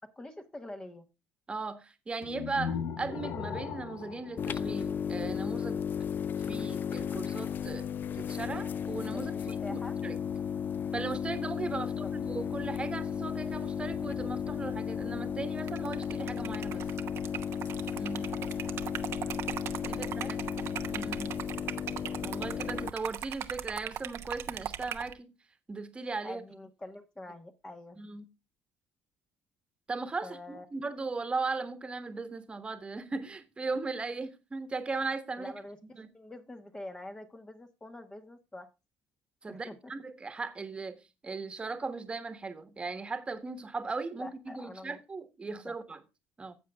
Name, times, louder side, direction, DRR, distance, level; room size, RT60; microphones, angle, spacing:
voice 1, 0.2-1.1 9.1-9.9 11.8-12.1 18.1-18.5 20.2-20.3 26.2-28.0 30.2-30.6 35.4-35.8 36.1-38.7 39.5-39.9 44.2-45.0 45.4-45.7, left 1 dB, 15° left, 1.3 m, -45 dB
voice 2, 1.5-5.9 6.4-7.9 8.1-10.2 10.9-16.9 17.9-18.3 19.8-20.4 20.9-21.4 22.2-25.3 25.7-26.4 28.0-28.3 29.9-35.5 35.9-36.1 39.4-46.0 46.4-46.5, right 3 dB, 20° right, 1.5 m, -38 dB
sound 1, 2.2-5.4, left 7 dB, 60° left, 1.1 m, -38 dB
sound 2, 4.4-22.9, left 7 dB, 40° left, 0.4 m, -34 dB
Liquid, 15.6-25.1, right 10 dB, 60° right, 1.0 m, -39 dB
15.0 x 7.5 x 2.4 m
cardioid pair, 115°, 5 cm